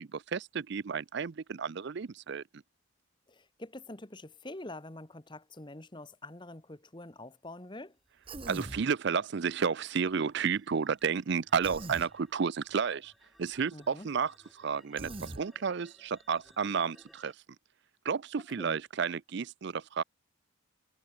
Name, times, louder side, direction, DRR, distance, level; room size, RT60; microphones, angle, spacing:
voice 1, 0.0-2.6 8.5-13.1 13.4-17.3 18.0-20.0, right 6 dB, 55° right, 0.4 m, -32 dB
voice 2, 3.3-7.9 13.7-14.1 18.6-18.8, left 2 dB, 20° left, 1.2 m, -46 dB
sound 1, 8.1-17.3, equal, ahead, 2.4 m, -64 dB
Human voice, 8.3-8.8 11.6-12.1 15.0-15.4, right 2 dB, 25° right, 1.1 m, -41 dB
head